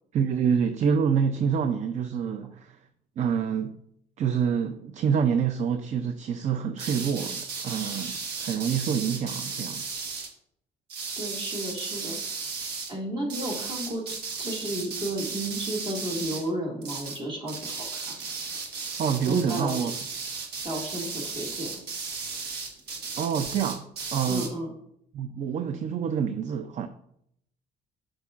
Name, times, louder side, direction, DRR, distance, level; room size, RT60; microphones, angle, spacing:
voice 1, 0.1-2.7 3.2-3.8 4.2-9.8 19.0-19.9 23.2-24.5 25.1-26.9, right 7 dB, 45° right, 0.4 m, -27 dB
sound 1, 6.8-10.3 10.9-12.9 13.3-16.5 16.8-17.2 17.5-24.5, right 4 dB, 70° right, 1.3 m, -35 dB
voice 2, 11.2-12.2 12.9-18.2 19.3-19.9 20.4-21.7 24.3-24.7, right 1 dB, 30° right, 2.0 m, -33 dB
8.2 x 6.2 x 2.5 m
cardioid pair, 110°, 17 cm